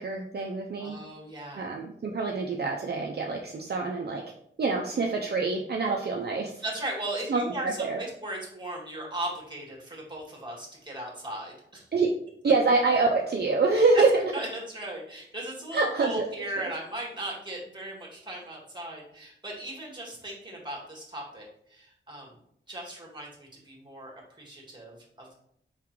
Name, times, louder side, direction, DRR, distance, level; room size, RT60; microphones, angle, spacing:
voice 1, 0.0-1.0 1.6-4.2 4.6-6.6 7.3-8.0 11.9-12.1 12.4-14.1 15.7-16.3 16.5-16.6, right 3 dB, 55° right, 0 dB, 0.5 m, -26 dB
voice 2, 0.8-1.7 6.6-11.8 13.7-14.0 14.3-22.4 22.7-24.1 24.4-25.3, right 1 dB, 20° right, -2 dB, 1.7 m, -37 dB
4.7 x 3.6 x 3.0 m, 0.70 s
wide cardioid pair, 75°, 21 cm